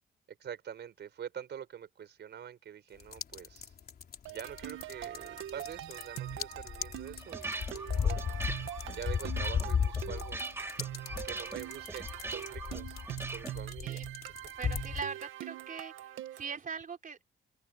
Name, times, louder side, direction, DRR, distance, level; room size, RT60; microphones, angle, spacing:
voice 1, 0.3-3.7 4.3-8.2 8.9-10.4 11.2-12.0 12.3-13.0 13.3-14.2, right 8 dB, 60° right, 4.8 m, -45 dB
sound 1, 3.0-15.0, left 7 dB, 50° left, 3.8 m, -36 dB
sound 2, 4.3-16.6, right 13 dB, 85° right, 1.8 m, -43 dB
sound 3, 7.0-13.6, right 2 dB, 10° right, 1.5 m, -42 dB
voice 2, 14.6-15.9 16.3-17.2, right 6 dB, 45° right, 3.6 m, -40 dB
cardioid pair, 90°, 20 cm